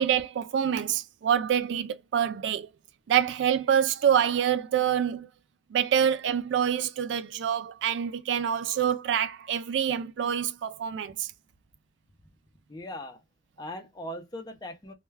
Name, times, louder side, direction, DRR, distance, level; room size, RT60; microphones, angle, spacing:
voice 1, 0.0-2.7 3.1-5.3 5.7-11.3, right 9 dB, 80° right, 0.3 m, -26 dB
voice 2, 12.7-13.2 13.6-14.9, left 1 dB, 20° left, 0.5 m, -39 dB
2.2 x 2.2 x 3.2 m
head